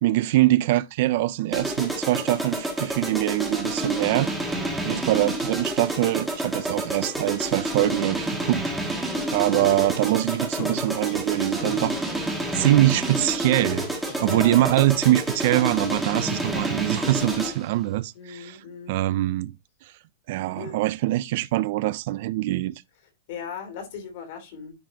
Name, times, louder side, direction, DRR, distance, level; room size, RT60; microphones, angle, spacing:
voice 1, 0.0-4.3 4.9-12.0 12.5-13.9 14.2-19.5 19.8-19.9 20.3-22.7, right 16 dB, 45° right, 0.3 m, -23 dB
sound 1, 1.5-17.7, right 1 dB, ahead, 1.5 m, -29 dB
voice 2, 4.6-5.0 9.1-9.3 14.2-14.6 18.1-19.0 20.5-20.8 23.3-24.7, left 6 dB, 50° left, 2.8 m, -38 dB
sound 2, 9.5-13.2 13.6-15.9 16.1-16.7 17.0-17.2, left 6 dB, 25° left, 1.6 m, -38 dB
10.0 x 4.1 x 2.8 m
supercardioid pair, 170°, 0 cm